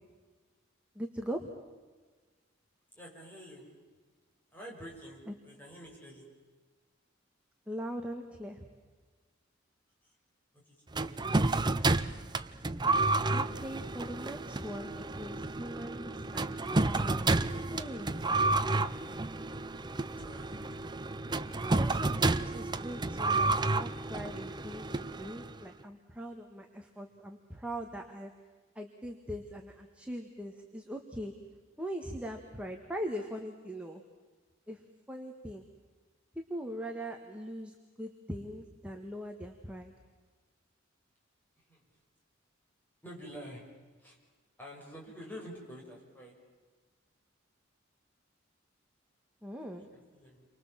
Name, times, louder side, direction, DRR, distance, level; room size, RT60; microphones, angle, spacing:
voice 1, 1.0-1.5 5.3-5.4 7.7-8.6 13.3-17.4 17.7-18.4 21.8-28.3 28.8-31.3 31.8-34.0 34.7-34.8 35.1-35.6 36.4-39.9 49.4-49.9, equal, 5° right, 2 dB, 1.7 m, -41 dB
voice 2, 2.9-3.7 4.5-6.3 10.0-10.1 10.5-11.3 20.2-20.6 41.7-41.8 43.0-43.7 44.0-44.2 44.6-46.3 49.7-50.5, equal, 10° left, -3 dB, 7.0 m, -48 dB
sound 1, 10.9-25.6, right 2 dB, 20° right, 0.7 m, -31 dB
30.0 x 24.5 x 7.5 m, 1.4 s
head